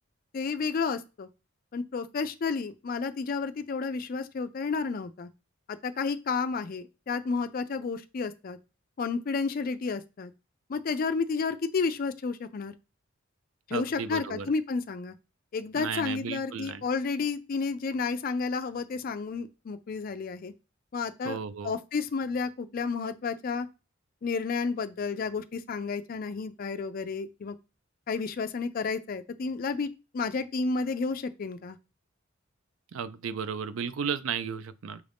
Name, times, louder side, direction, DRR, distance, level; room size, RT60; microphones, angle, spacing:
voice 1, 0.3-1.3 1.7-5.3 5.7-8.6 9.0-10.3 10.7-12.7 13.7-15.1 15.5-20.5 20.9-21.4 21.6-23.7 24.2-27.6 28.1-29.9 30.1-31.8, left 4 dB, 45° left, 0.4 m, -31 dB
voice 2, 13.7-14.5 15.7-16.8 21.2-21.7 32.9-35.0, right 6 dB, 75° right, 0.4 m, -34 dB
6.1 x 2.5 x 3.4 m
head